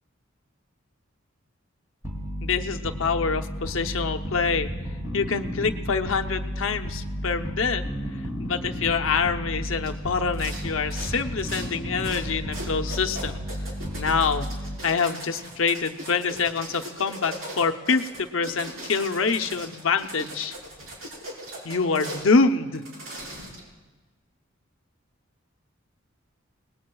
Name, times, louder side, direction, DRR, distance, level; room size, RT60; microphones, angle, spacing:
sound 1, 2.0-15.0, equal, 15° right, 2.9 m, -33 dB
voice 1, 2.4-4.7 5.1-7.9 8.4-13.4 14.0-14.5 14.8-20.6 21.6-22.9, left 4 dB, 75° left, 6 dB, 0.8 m, -25 dB
sound 2, 9.8-10.0 10.3-10.6 10.9-11.7 12.0-12.3 12.5-22.3 22.7-23.7, right 1 dB, 80° right, 4.3 m, -39 dB
28.5 x 19.0 x 2.3 m, 1.3 s
head